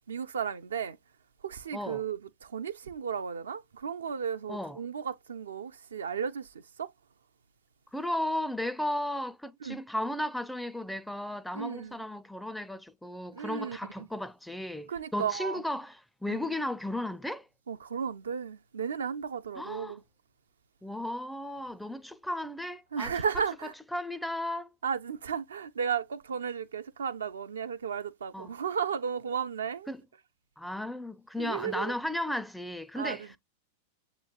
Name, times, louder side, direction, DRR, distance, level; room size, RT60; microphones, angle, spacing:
voice 1, 0.1-1.0 1.4-6.9 9.6-9.8 11.5-12.0 13.3-14.1 14.9-15.6 16.3-16.4 17.7-20.0 22.9-23.7 24.8-29.9 31.4-31.9 33.0-33.4, right 7 dB, 70° right, 0.4 m, -34 dB
voice 2, 4.5-4.8 7.9-17.5 19.6-20.0 20.8-23.1 23.9-24.7 28.3-28.5 29.9-30.0 30.6-33.4, left 1 dB, ahead, 0.4 m, -35 dB
7.3 x 3.0 x 2.2 m
figure-of-eight pair, 90°, 0 cm